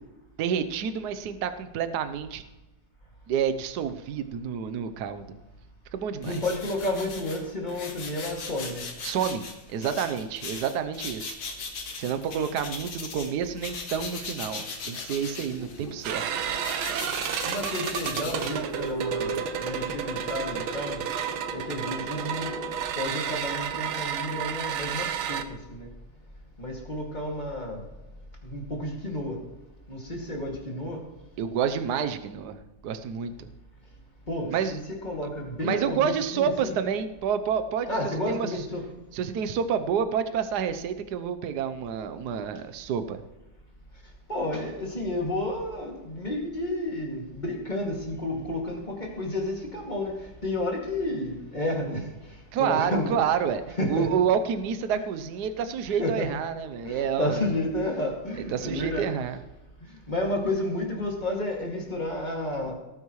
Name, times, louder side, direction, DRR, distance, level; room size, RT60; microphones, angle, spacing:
voice 1, 0.4-2.4 3.3-5.3 5.9-6.4 9.0-9.4 9.7-11.4 12.0-16.3 31.4-32.6 32.8-33.5 34.5-34.8 35.6-38.0 38.3-38.5 39.1-43.2 52.5-57.5 58.3-59.4, right 7 dB, 60° right, 10 dB, 1.2 m, -29 dB
sound 1, 6.2-13.3 13.6-19.0, left 4 dB, 85° left, 2.5 m, -39 dB
voice 2, 6.2-8.8 17.4-21.0 21.5-22.5 23.0-25.4 25.7-25.9 26.6-27.8 28.4-29.4 29.9-31.0 34.3-36.8 37.9-38.9 44.3-52.1 52.6-53.2 53.8-54.1 54.9-55.0 56.0-56.3 56.8-59.1 60.1-62.7, left 1 dB, 20° left, -1 dB, 2.4 m, -31 dB
sound 2, 15.5-23.2, left 1 dB, 55° left, 3.1 m, -44 dB
sound 3, 16.0-25.4, right 8 dB, 80° right, 1.6 m, -31 dB
18.0 x 9.5 x 3.2 m, 1.1 s
omnidirectional pair, 2.3 m